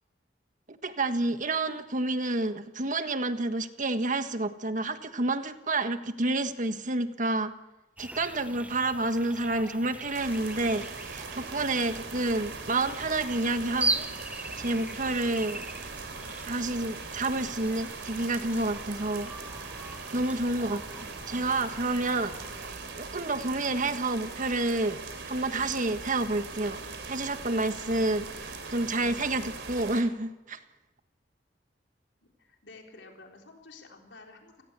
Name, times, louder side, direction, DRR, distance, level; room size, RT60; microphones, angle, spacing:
voice 1, 0.7-7.5 8.0-14.0 14.3-15.6 16.4-19.3 20.1-25.0 25.3-26.8 27.1-30.6, right 2 dB, 45° right, 9 dB, 1.5 m, -29 dB
sound 1, 8.0-22.7, right 2 dB, 10° right, 1.0 m, -40 dB
voice 2, 8.3-8.8 23.4-23.5 27.8-28.0 32.4-34.6, left 3 dB, 80° left, 2 dB, 4.2 m, -51 dB
sound 2, 10.1-30.0, right 4 dB, 85° right, 3.6 m, -41 dB
29.5 x 18.0 x 8.3 m, 1.0 s
head